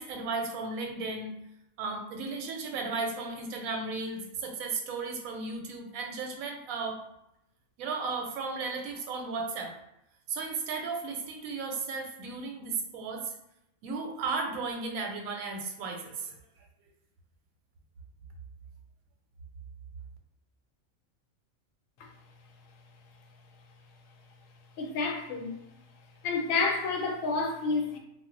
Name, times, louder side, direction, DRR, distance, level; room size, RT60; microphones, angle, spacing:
voice 1, 0.0-1.4 1.8-7.0 7.8-9.8 10.3-13.3 13.8-16.4, right 4 dB, 85° right, 2 dB, 1.0 m, -35 dB
voice 2, 24.8-25.5 26.2-28.0, left 4 dB, 75° left, 2 dB, 1.0 m, -29 dB
2.3 x 2.0 x 3.7 m, 0.86 s
omnidirectional pair, 1.4 m